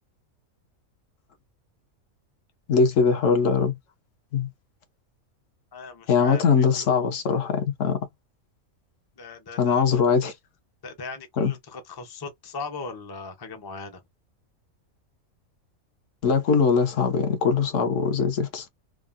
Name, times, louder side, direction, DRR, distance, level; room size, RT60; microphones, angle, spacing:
voice 1, 2.7-3.8 4.3-4.5 6.1-8.0 9.6-10.3 11.4-11.5 16.2-18.7, left 5 dB, 65° left, 1.0 m, -21 dB
voice 2, 5.7-6.9 9.2-9.9 10.8-14.0, left 4 dB, 40° left, 0.3 m, -38 dB
3.5 x 2.0 x 2.4 m
omnidirectional pair, 1.5 m